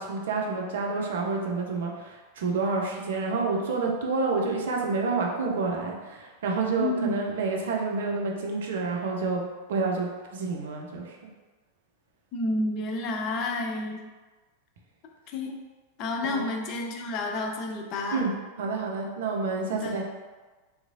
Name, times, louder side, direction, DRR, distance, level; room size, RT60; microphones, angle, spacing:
voice 1, 0.0-9.4 9.7-11.2 16.2-16.5 18.1-18.3 18.6-20.1, right 4 dB, 60° right, 0 dB, 0.4 m, -29 dB
voice 2, 6.8-7.2 12.3-14.0 15.3-15.6 16.0-18.2 19.7-20.1, left 2 dB, 40° left, 2 dB, 0.4 m, -30 dB
2.9 x 2.4 x 2.4 m, 1.3 s
figure-of-eight pair, 90°, 0 cm